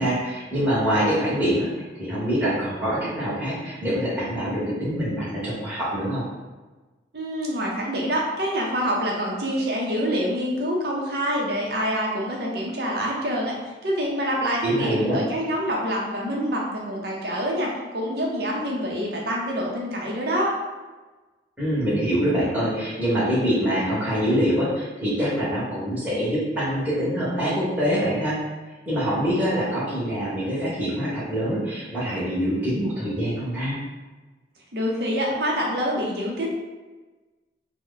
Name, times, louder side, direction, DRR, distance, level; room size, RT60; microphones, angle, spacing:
voice 1, 0.0-6.2 14.6-15.2 21.6-28.4 28.9-33.8, equal, 10° right, -10 dB, 1.1 m, -25 dB
voice 2, 7.1-13.5 13.8-20.5 34.7-36.5, equal, 60° right, -2 dB, 0.7 m, -26 dB
3.0 x 2.2 x 3.8 m, 1.2 s
head